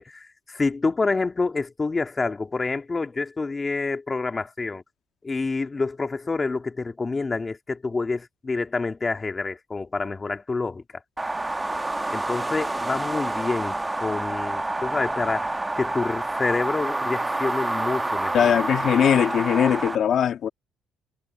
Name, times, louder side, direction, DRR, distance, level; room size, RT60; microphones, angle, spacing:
voice 1, 0.0-4.8 5.2-10.8 12.1-18.6, left 3 dB, 25° left, 2.3 m, -28 dB
sound 1, 11.2-20.0, right 2 dB, 15° right, 1.2 m, -28 dB
voice 2, 18.3-20.5, left 9 dB, 60° left, 2.0 m, -20 dB
cardioid pair, 90°, 0 cm